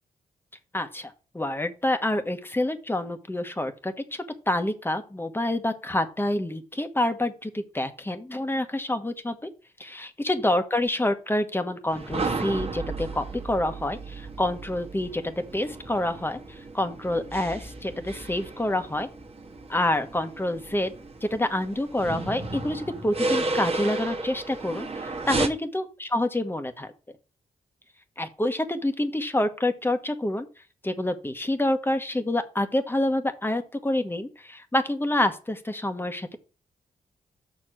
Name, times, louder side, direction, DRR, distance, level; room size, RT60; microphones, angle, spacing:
voice 1, 0.7-9.5 9.8-19.1 19.7-20.9 21.2-26.9 28.2-30.5 30.8-36.4, left 1 dB, 15° left, 7 dB, 1.3 m, -27 dB
sound 1, 11.9-25.5, right 3 dB, 40° right, 1.5 m, -33 dB
6.4 x 4.6 x 6.1 m, 0.33 s
cardioid pair, 65°, 16 cm